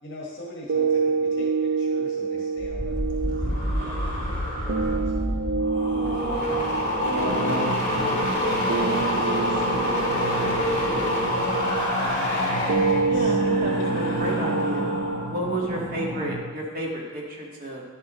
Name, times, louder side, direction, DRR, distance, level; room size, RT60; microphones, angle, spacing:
voice 1, 0.0-6.4 7.0-11.8 12.1-12.2 12.8-13.8, left 1 dB, 60° left, -4 dB, 1.5 m, -39 dB
sound 1, 0.7-16.7, right 4 dB, 70° right, 0.5 m, -28 dB
sound 2, 2.6-15.2 15.5-16.0, equal, 35° left, 2.9 m, -27 dB
sound 3, 7.2-16.4, right 1 dB, 5° left, 2.6 m, -34 dB
voice 2, 13.0-15.0 15.3-17.8, right 1 dB, 45° right, -2 dB, 1.7 m, -31 dB
11.0 x 7.4 x 3.1 m, 1.4 s
head